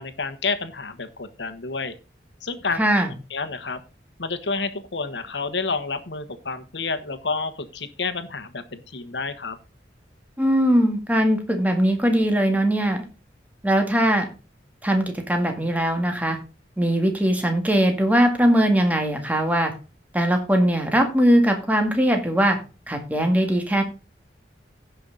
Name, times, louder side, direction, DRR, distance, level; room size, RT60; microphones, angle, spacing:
voice 1, 0.0-1.9 2.4-2.8 3.3-3.8 4.2-9.6, left 4 dB, 80° left, 10 dB, 1.3 m, -29 dB
voice 2, 2.8-3.1 10.4-13.0 13.6-14.3 14.8-16.4 16.8-19.7 20.1-22.6 22.9-23.8, equal, 10° right, 4 dB, 1.9 m, -20 dB
15.5 x 5.7 x 3.9 m, 0.32 s
head